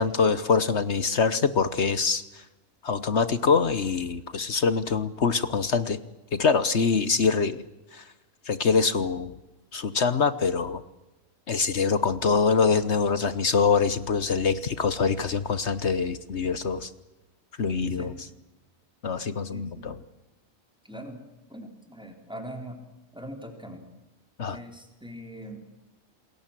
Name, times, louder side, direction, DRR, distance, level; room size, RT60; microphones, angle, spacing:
voice 1, 0.0-2.2 2.8-6.0 6.3-7.6 7.9-8.0 8.5-9.4 9.7-10.8 11.5-16.9 17.6-18.1 19.0-20.0 24.4-24.6, left 5 dB, 55° left, 13 dB, 1.3 m, -24 dB
voice 2, 17.8-18.1 19.5-20.0 20.8-21.2 21.5-22.8 23.1-23.8 24.5-25.6, equal, 5° right, 3 dB, 4.3 m, -41 dB
28.5 x 21.0 x 7.6 m, 1.0 s
omnidirectional pair, 1.4 m